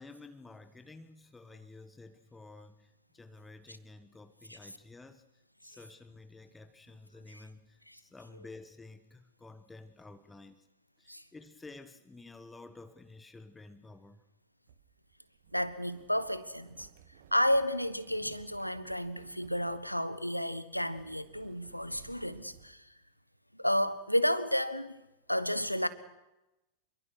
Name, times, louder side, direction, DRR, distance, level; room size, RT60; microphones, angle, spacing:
voice 1, 0.0-5.2 5.6-10.7 11.0-14.2, left 3 dB, 10° left, 1.4 m, -52 dB
sound 1, 14.7-22.7, right 10 dB, 60° right, 1.9 m, -58 dB
voice 2, 15.5-16.9 17.3-22.9 23.5-25.0 25.3-25.9, equal, 90° left, 1.3 m, -32 dB
27.0 x 23.0 x 6.3 m
figure-of-eight pair, 90°, 0 cm